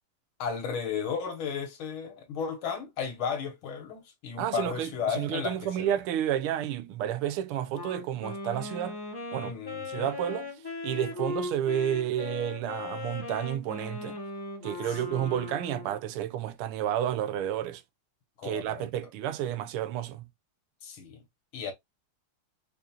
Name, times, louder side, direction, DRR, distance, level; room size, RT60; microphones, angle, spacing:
voice 1, 0.4-6.0 9.4-10.1 14.9-15.0 18.4-18.9 20.8-21.2 21.5-21.7, left 6 dB, 70° left, 2.0 m, -34 dB
voice 2, 4.4-9.0 9.3-9.6 9.9-10.5 10.8-14.2 14.6-17.8 18.4-20.2, right 11 dB, 90° right, 1.5 m, -31 dB
Wind instrument woodwind instrument, 7.7-16.0, left 3 dB, 35° left, 0.4 m, -38 dB
5.2 x 2.4 x 2.8 m
omnidirectional pair, 2.3 m